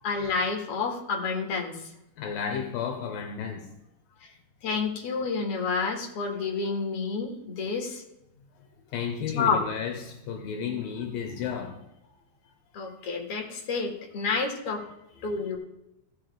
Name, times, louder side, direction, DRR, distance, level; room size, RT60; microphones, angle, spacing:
voice 1, 0.0-1.9 4.2-4.3 4.6-8.0 9.3-9.6 12.7-14.9 15.2-15.6, left 4 dB, 45° left, 2.6 m, -29 dB
voice 2, 2.2-3.7 8.9-11.8 15.4-15.5, left 7 dB, 75° left, 2.7 m, -32 dB
16.0 x 6.8 x 3.4 m
omnidirectional pair, 4.3 m